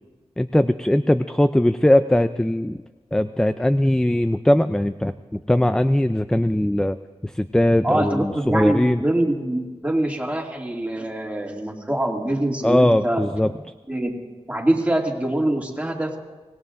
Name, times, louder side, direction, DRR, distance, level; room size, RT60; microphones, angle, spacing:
voice 1, 0.4-2.8 3.1-7.0 7.2-9.0 12.6-13.5, left 1 dB, 5° left, 11 dB, 0.4 m, -20 dB
voice 2, 7.8-13.2 13.9-14.1 14.5-16.2, right 1 dB, 10° right, -1 dB, 2.3 m, -24 dB
24.5 x 18.0 x 2.6 m, 1.3 s
wide cardioid pair, 60°, 11 cm